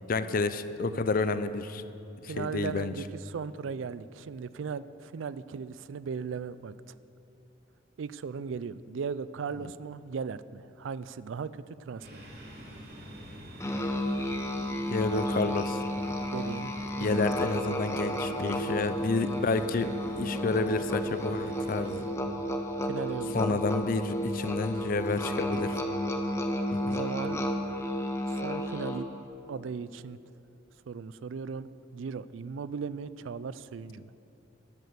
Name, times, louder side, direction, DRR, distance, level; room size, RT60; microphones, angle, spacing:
voice 1, 0.1-1.8 2.2-2.9 14.9-15.8 17.0-22.1 23.3-25.8 26.7-27.0, left 3 dB, 45° left, 13 dB, 0.4 m, -30 dB
voice 2, 2.3-6.7 8.0-12.2 16.3-16.7 17.0-17.3 22.8-23.6 26.8-27.4 28.3-29.1 29.5-30.2 30.9-34.1, right 5 dB, 85° right, 16 dB, 0.4 m, -37 dB
sound 1, 12.0-22.0, equal, 60° right, 3.1 m, -46 dB
Musical instrument, 13.6-29.2, equal, 15° left, 0.8 m, -32 dB
11.0 x 8.6 x 6.8 m, 2.7 s
head